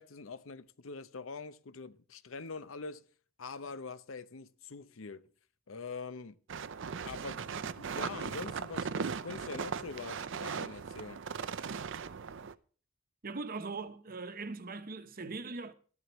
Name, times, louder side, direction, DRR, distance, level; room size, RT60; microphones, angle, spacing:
voice 1, 0.0-3.0 3.4-5.3 5.7-6.4 7.1-11.2, left 4 dB, 70° left, 0.7 m, -44 dB
sound 1, 6.5-12.5, right 6 dB, 65° right, 0.6 m, -38 dB
voice 2, 13.2-15.7, right 3 dB, 45° right, 1.0 m, -40 dB
14.0 x 11.0 x 3.1 m
head